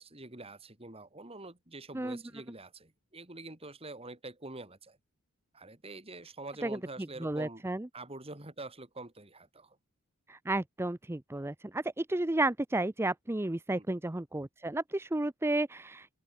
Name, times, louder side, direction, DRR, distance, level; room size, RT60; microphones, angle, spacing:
voice 1, 0.0-5.0 5.5-7.6 7.9-9.8 13.7-13.8, right 2 dB, 25° right, 3.2 m, -46 dB
voice 2, 7.2-7.9 10.3-16.1, right 2 dB, 10° right, 0.5 m, -32 dB
open air
head